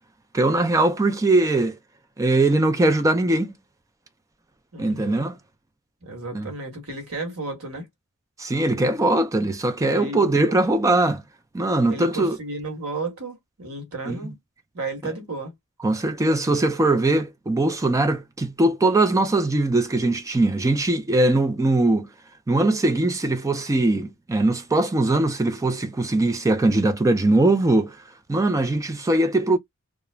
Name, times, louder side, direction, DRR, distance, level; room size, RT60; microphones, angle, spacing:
voice 1, 0.3-1.8 2.2-3.6 4.8-5.4 6.3-6.5 8.4-11.2 11.5-12.4 14.1-14.2 15.8-22.1 22.5-28.0 28.3-29.6, right 2 dB, 15° right, 0.3 m, -21 dB
voice 2, 4.7-5.3 6.0-7.9 9.8-10.6 11.9-14.4 14.7-15.5, right 3 dB, 70° right, 1.2 m, -33 dB
2.4 x 2.0 x 3.1 m
head